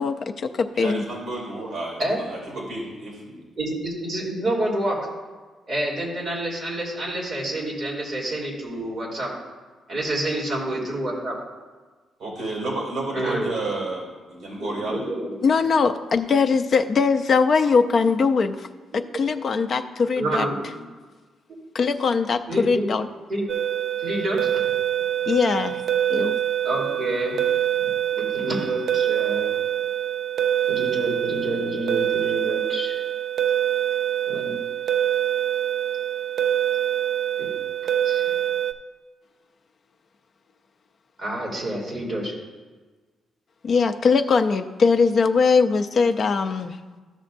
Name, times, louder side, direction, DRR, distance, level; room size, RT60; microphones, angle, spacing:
voice 1, 0.0-1.0 15.4-18.7 18.9-20.4 21.7-23.1 25.3-25.8 26.1-26.4 43.6-46.8, left 5 dB, 40° left, 7 dB, 0.4 m, -21 dB
voice 2, 0.7-3.4 12.2-15.0, right 2 dB, 45° right, -3 dB, 2.5 m, -31 dB
voice 3, 3.6-5.0 5.7-9.3 9.9-11.3 13.1-13.5 14.6-15.5 20.2-20.6 22.5-22.9 23.3-23.5 24.0-24.5 26.6-27.4 28.2-29.5 30.7-33.0 34.3-34.5 37.4-37.5 38.0-38.4 41.2-42.3, right 1 dB, 30° right, -4 dB, 2.6 m, -28 dB
sound 1, 23.5-38.7, right 11 dB, 60° right, 0.4 m, -25 dB
14.0 x 6.2 x 2.6 m, 1.3 s
cardioid pair, 150°, 0 cm